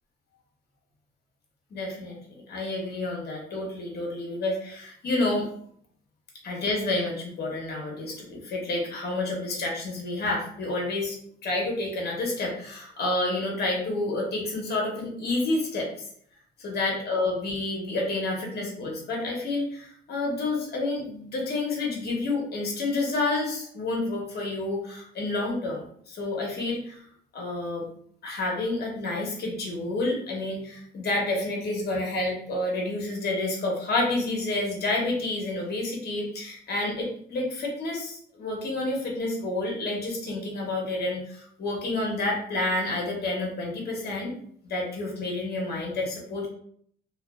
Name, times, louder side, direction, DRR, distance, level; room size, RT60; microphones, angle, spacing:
voice 1, 1.7-5.5 6.4-11.2 11.4-15.9 16.6-27.0 27.3-27.9 28.2-44.3 44.6-46.5, left 2 dB, 55° left, -1 dB, 0.9 m, -29 dB
2.5 x 2.3 x 2.2 m, 0.62 s
cardioid pair, 90°, 20 cm